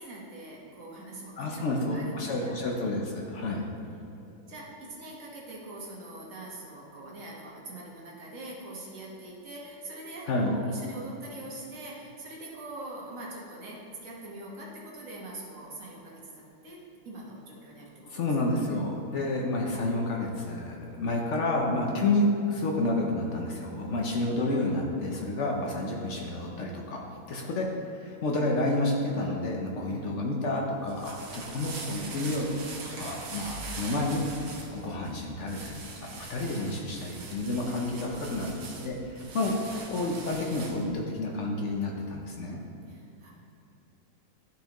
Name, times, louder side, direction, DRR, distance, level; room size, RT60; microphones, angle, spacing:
voice 1, 0.0-2.6 3.1-3.6 4.5-16.8 17.0-18.2 29.7-30.2 42.9-43.3, right 2 dB, 45° right, -4 dB, 1.5 m, -43 dB
voice 2, 1.4-3.6 10.3-10.5 18.1-27.7 28.0-32.6 33.0-39.6 39.9-42.6, left 2 dB, 65° left, -1 dB, 0.7 m, -30 dB
sound 1, 30.7-40.9, right 3 dB, 70° right, 1.7 m, -42 dB
11.5 x 4.5 x 3.0 m, 2.9 s
omnidirectional pair, 2.1 m